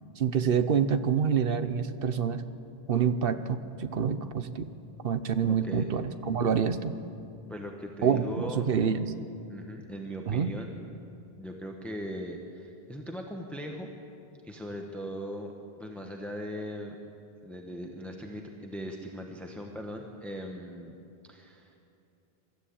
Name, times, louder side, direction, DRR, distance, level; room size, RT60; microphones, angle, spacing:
voice 1, 0.2-2.4 2.9-4.7 5.0-6.9 8.0-9.1 10.3-10.5, right 7 dB, 65° right, 11 dB, 1.0 m, -27 dB
voice 2, 5.5-5.9 7.5-9.0 9.5-10.7 11.4-13.9 14.4-15.5 15.8-17.0 17.4-21.0 21.2-21.7, equal, ahead, 2 dB, 1.2 m, -39 dB
24.0 x 13.0 x 8.6 m, 2.8 s
omnidirectional pair, 1.0 m